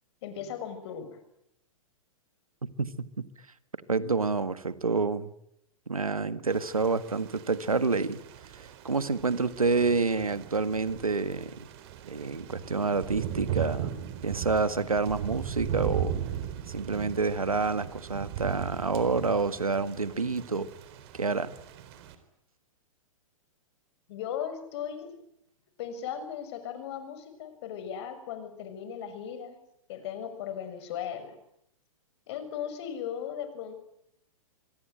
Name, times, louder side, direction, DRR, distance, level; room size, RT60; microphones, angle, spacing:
voice 1, 0.2-1.2 24.1-25.1 25.8-29.6 29.9-31.3 32.3-33.7, left 8 dB, 50° left, 10 dB, 6.5 m, -37 dB
voice 2, 3.9-5.3 5.9-8.2 8.5-11.5 12.1-14.0 14.2-16.2 16.7-20.7 21.1-21.5, right 4 dB, 90° right, 13 dB, 1.8 m, -28 dB
Thunder / Rain, 6.5-22.1, right 9 dB, 45° right, 4.1 m, -38 dB
26.0 x 23.0 x 9.2 m, 0.77 s
figure-of-eight pair, 115°, 18 cm